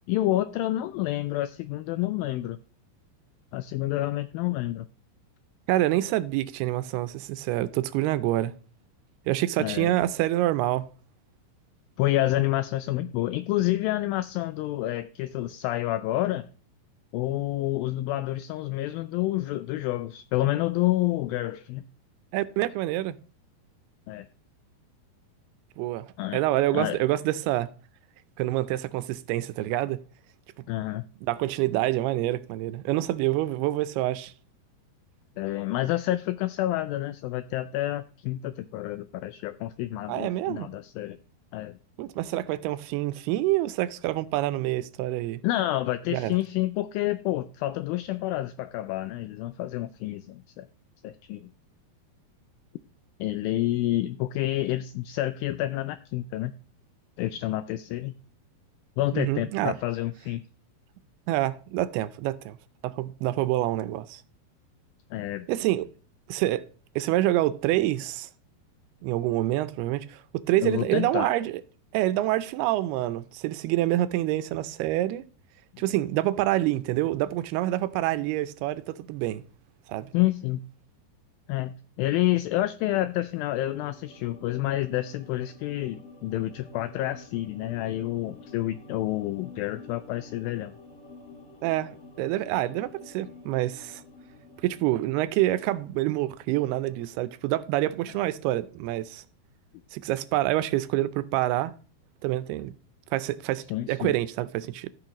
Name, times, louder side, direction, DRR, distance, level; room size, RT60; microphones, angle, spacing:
voice 1, 0.1-2.6 3.5-4.9 9.6-9.9 12.0-16.5 17.1-21.8 24.1-24.3 26.2-26.4 26.7-27.0 30.7-31.0 35.4-41.2 41.5-41.7 45.4-50.7 51.0-51.5 53.2-56.5 57.2-58.1 59.0-60.4 65.1-65.5 70.6-71.3 80.1-80.6 81.5-90.7 103.7-104.1, left 15 dB, 85° left, 2.1 m, -28 dB
voice 2, 5.7-8.5 9.3-10.9 22.3-23.2 25.8-26.1 26.3-27.7 28.4-30.0 31.2-34.3 40.1-40.7 42.0-45.4 46.1-46.4 59.1-59.8 61.3-62.6 62.8-64.2 65.5-65.9 66.3-66.6 67.0-68.3 69.0-71.6 71.9-75.2 75.8-79.4 79.9-80.1 91.6-91.9 92.2-94.0 94.6-99.2 99.9-101.7 102.2-102.7 103.1-104.9, right 15 dB, 85° right, 2.6 m, -27 dB
sound 1, 83.3-97.9 98.2-98.3, left 3 dB, 65° left, 0.6 m, -50 dB
14.5 x 6.4 x 3.0 m
omnidirectional pair, 4.6 m